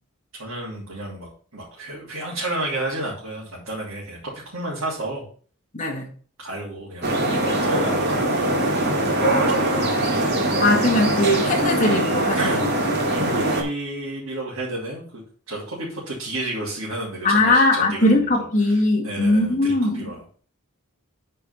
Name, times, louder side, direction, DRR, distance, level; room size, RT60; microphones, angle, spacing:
voice 1, 0.4-5.2 6.4-9.2 9.5-10.7 12.4-12.7 13.1-20.4, right 1 dB, 80° right, 2.9 m, -32 dB
voice 2, 5.7-6.1 10.6-12.7 17.2-20.1, left 2 dB, 35° left, 2.0 m, -20 dB
sound 1, 7.0-13.6, right 1 dB, 50° right, 2.2 m, -22 dB
9.0 x 4.7 x 5.6 m
head